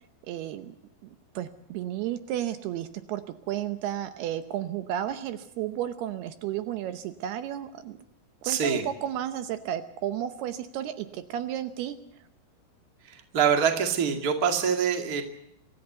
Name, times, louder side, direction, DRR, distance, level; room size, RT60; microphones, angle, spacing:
voice 1, 0.3-0.7 1.0-1.1 1.4-8.0 8.4-12.0, right 11 dB, 75° right, 10 dB, 2.7 m, -33 dB
voice 2, 8.4-8.8 13.0-15.2, right 7 dB, 30° right, 5 dB, 1.8 m, -25 dB
25.0 x 14.0 x 7.9 m, 0.83 s
omnidirectional pair, 5.0 m